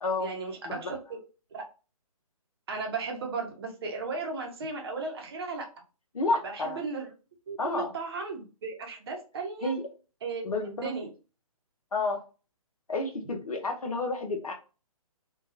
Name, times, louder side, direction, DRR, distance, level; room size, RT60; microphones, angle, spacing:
voice 1, 0.2-1.2 1.5-1.6 2.7-5.7 6.4-7.1 7.5-9.7 10.2-10.5 10.8-11.1, right 4 dB, 45° right, 2 dB, 0.7 m, -35 dB
voice 2, 6.1-6.8 7.6-7.9 9.6-9.8 10.4-10.9 11.9-12.2 12.9-14.5, left 2 dB, 75° left, 3 dB, 0.7 m, -30 dB
2.7 x 2.3 x 2.4 m, 0.33 s
figure-of-eight pair, 135°, 19 cm